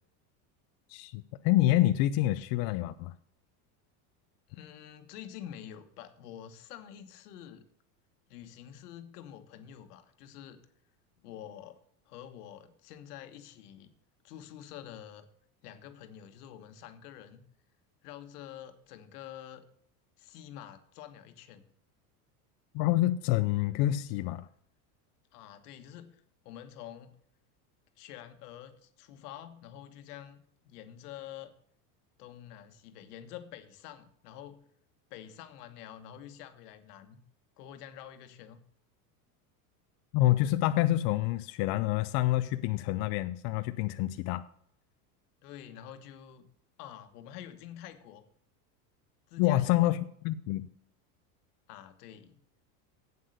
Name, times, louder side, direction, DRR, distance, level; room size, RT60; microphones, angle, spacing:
voice 1, 0.9-3.1 22.7-24.5 40.1-44.4 49.4-50.7, left 15 dB, 55° left, 0.6 m, -27 dB
voice 2, 4.5-7.7 8.3-10.6 11.2-11.8 12.1-13.9 14.2-15.3 15.6-17.4 18.0-19.7 20.2-21.6 25.3-27.2 28.0-31.5 32.2-34.6 35.1-37.2 37.6-38.6 45.4-46.5 46.8-48.2 49.3-49.9 51.7-52.4, left 10 dB, 80° left, 1.4 m, -47 dB
8.3 x 7.7 x 6.5 m
supercardioid pair, 115°, 46 cm